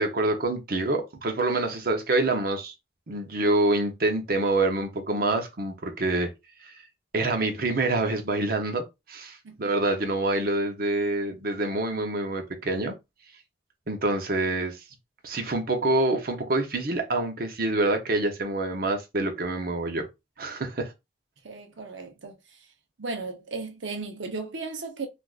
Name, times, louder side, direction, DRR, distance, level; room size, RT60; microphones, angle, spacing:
voice 1, 0.0-2.7 3.1-6.3 6.6-6.8 7.1-12.9 13.9-14.8 15.2-20.1 20.4-20.9, right 2 dB, 55° right, 0.7 m, -26 dB
voice 2, 21.4-22.6 23.0-25.1, right 3 dB, 90° right, 0.8 m, -35 dB
3.4 x 2.5 x 2.4 m
head